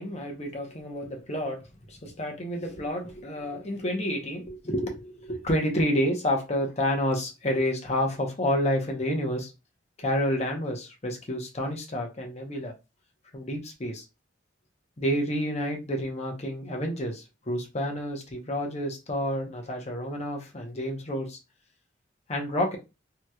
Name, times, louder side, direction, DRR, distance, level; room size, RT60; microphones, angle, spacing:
voice 1, 0.0-9.5 10.0-12.7 13.3-14.0 15.0-21.4 22.3-22.8, equal, 35° left, 0.8 m, -29 dB
3.0 x 2.8 x 2.3 m
head